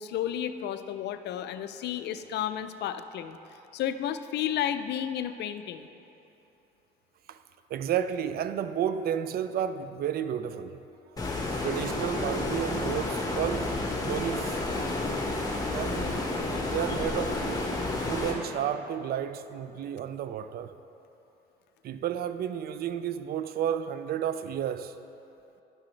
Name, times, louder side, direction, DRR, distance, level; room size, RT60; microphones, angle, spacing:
voice 1, 0.0-3.4 3.7-5.9, left 10 dB, 55° left, 0.4 m, -32 dB
voice 2, 7.7-10.8 11.6-14.6 15.7-16.2 16.6-17.7 18.0-20.7 21.8-25.0, right 9 dB, 50° right, 0.4 m, -32 dB
Stream, 11.2-18.3, left 2 dB, 15° left, 1.3 m, -30 dB
10.5 x 5.9 x 3.2 m
supercardioid pair, 70°, 21 cm